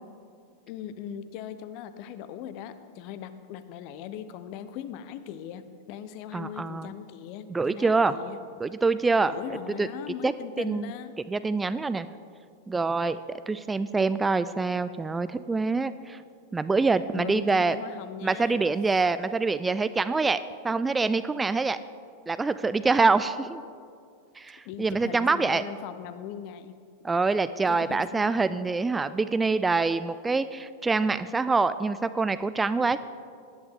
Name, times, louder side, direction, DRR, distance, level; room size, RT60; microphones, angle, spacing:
voice 1, 0.7-8.4 9.3-11.2 17.1-18.6 24.6-26.8 27.7-28.7, left 9 dB, 45° left, 12 dB, 0.7 m, -39 dB
voice 2, 6.3-6.9 7.5-8.2 8.6-9.3 9.8-9.9 10.2-10.3 10.6-10.9 11.3-12.1 12.7-16.2 16.5-17.8 18.2-20.4 20.6-21.8 22.3-23.7 24.4-25.6 27.0-33.0, right 4 dB, 10° right, 13 dB, 0.3 m, -25 dB
18.0 x 11.0 x 3.5 m, 2.3 s
figure-of-eight pair, 90°, 0 cm